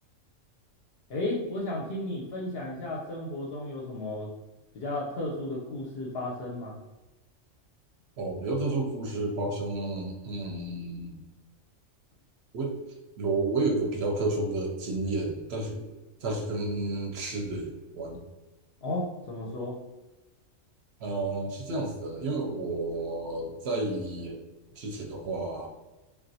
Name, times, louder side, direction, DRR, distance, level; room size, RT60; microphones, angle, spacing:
voice 1, 1.1-4.3 4.7-6.8 18.8-19.8, left 1 dB, 60° left, -3 dB, 0.7 m, -33 dB
voice 2, 8.2-11.2 12.5-12.7 13.2-15.9 16.2-18.2 21.0-24.4 24.8-25.7, right 2 dB, 65° right, 1 dB, 0.7 m, -31 dB
3.3 x 2.4 x 2.6 m, 1.1 s
omnidirectional pair, 1.3 m